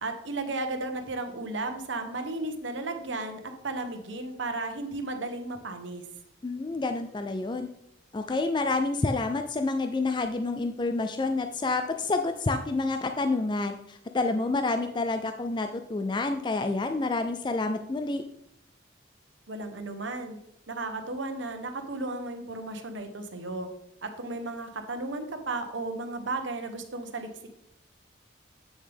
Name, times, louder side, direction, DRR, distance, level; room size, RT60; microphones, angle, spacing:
voice 1, 0.0-6.0 19.5-20.4 20.7-23.7 24.0-27.3, right 2 dB, 75° right, 6 dB, 1.1 m, -34 dB
voice 2, 6.4-7.7 8.1-18.2, left 3 dB, 25° left, 7 dB, 0.4 m, -28 dB
8.6 x 6.9 x 3.5 m, 0.79 s
head